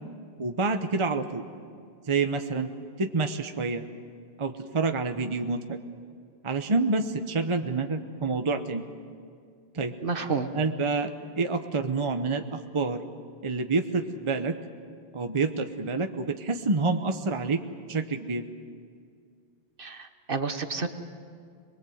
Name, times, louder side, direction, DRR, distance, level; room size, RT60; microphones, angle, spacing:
voice 1, 0.4-1.4 2.1-2.7 3.0-3.8 4.4-5.8 6.4-8.8 9.7-9.9 10.5-11.1 11.4-13.0 13.4-14.6 15.1-17.6 17.9-18.4, right 3 dB, 30° right, 7 dB, 0.9 m, -27 dB
voice 2, 10.0-10.5 19.8-20.9, right 4 dB, 55° right, 8 dB, 1.4 m, -30 dB
26.5 x 20.5 x 7.9 m, 2.2 s
omnidirectional pair, 1.1 m